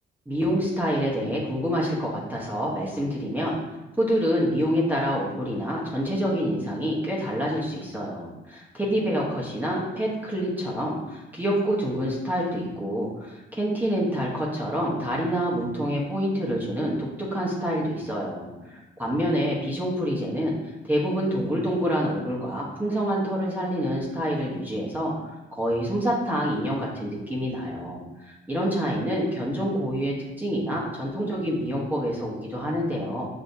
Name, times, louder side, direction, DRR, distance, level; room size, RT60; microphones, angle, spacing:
voice 1, 0.3-3.6 4.0-20.5 20.9-25.1 25.5-33.3, equal, 10° right, -5 dB, 1.1 m, -27 dB
6.3 x 3.1 x 2.7 m, 1.0 s
cardioid pair, 90°, 20 cm